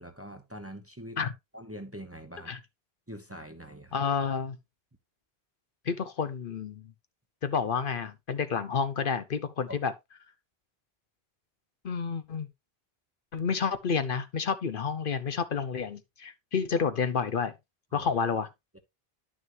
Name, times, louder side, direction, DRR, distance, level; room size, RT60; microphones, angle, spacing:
voice 1, 0.0-1.2 1.5-2.6 3.1-4.0 9.7-9.8 17.9-18.1, equal, 15° right, 0.9 m, -43 dB
voice 2, 3.9-4.6 5.9-6.9 7.4-9.9 11.8-12.5 13.3-17.5 17.9-18.5, left 6 dB, 60° left, 0.9 m, -30 dB
11.0 x 6.3 x 2.7 m
omnidirectional pair, 1.0 m